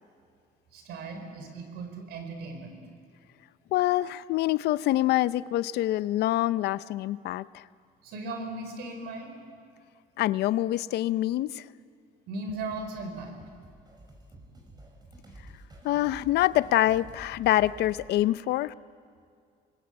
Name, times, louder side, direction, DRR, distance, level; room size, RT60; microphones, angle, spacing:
voice 1, 0.7-2.8 8.0-9.4 12.3-13.3, right 2 dB, 80° right, 6 dB, 5.0 m, -37 dB
voice 2, 3.7-7.6 10.2-11.7 15.8-18.7, left 14 dB, 75° left, 17 dB, 0.6 m, -25 dB
sound 1, 12.5-18.1, right 1 dB, 25° right, 5.3 m, -50 dB
27.0 x 21.5 x 8.8 m, 2.3 s
cardioid pair, 110°, 17 cm